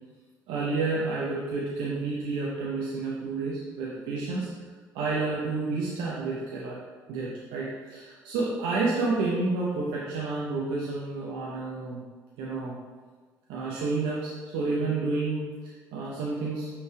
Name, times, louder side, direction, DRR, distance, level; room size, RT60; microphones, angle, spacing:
voice 1, 0.5-4.5 4.9-6.8 7.1-12.0 12.4-12.8 13.5-16.7, right 3 dB, 80° right, -5 dB, 0.6 m, -30 dB
5.6 x 3.2 x 2.2 m, 1.4 s
hypercardioid pair, 60°, 8 cm